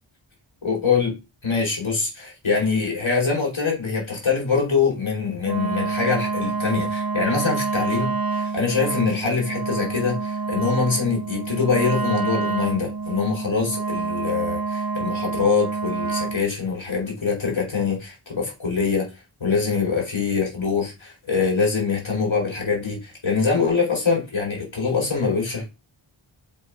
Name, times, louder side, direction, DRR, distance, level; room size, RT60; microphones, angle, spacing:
voice 1, 0.6-1.1 1.4-19.1 19.4-25.8, left 5 dB, 65° left, 4.6 m, -24 dB
Wind instrument woodwind instrument, 5.4-16.4, right 4 dB, 45° right, 0.8 m, -27 dB
7.4 x 4.4 x 4.9 m
wide cardioid pair, 55°, 50 cm